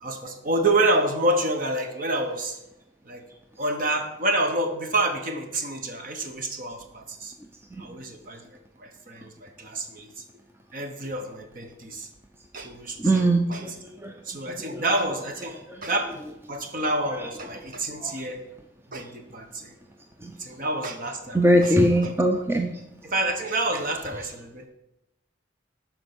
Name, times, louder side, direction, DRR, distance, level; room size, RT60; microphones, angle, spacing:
voice 1, 0.0-2.6 3.1-3.2 3.6-7.3 7.8-8.4 8.8-10.2 10.7-12.1 12.5-13.8 14.2-16.2 16.5-18.4 18.9-19.7 20.4-22.1 23.0-24.7, right 2 dB, 45° right, 5 dB, 1.1 m, -28 dB
voice 2, 13.0-13.7 14.0-14.1 14.7-14.8 18.0-18.3 20.2-20.3 21.3-22.8, right 1 dB, 10° right, 3 dB, 0.5 m, -21 dB
12.0 x 4.4 x 6.1 m, 0.90 s
head